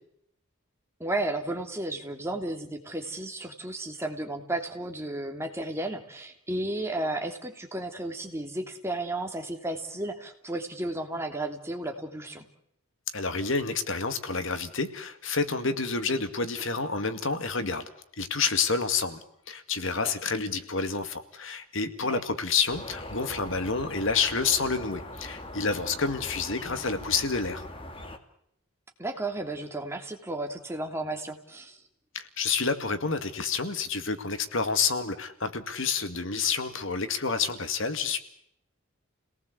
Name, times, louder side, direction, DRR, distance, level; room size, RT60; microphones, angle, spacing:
voice 1, 1.0-12.5 20.0-20.1 22.0-22.2 26.7-26.9 29.0-31.8, right 2 dB, 10° right, 4 dB, 2.9 m, -33 dB
voice 2, 13.1-17.9 18.2-27.7 32.1-38.2, left 4 dB, 60° left, 9 dB, 2.1 m, -29 dB
sound 1, 22.7-28.2, left 1 dB, 25° left, 2.3 m, -41 dB
30.0 x 18.5 x 8.2 m, 0.73 s
head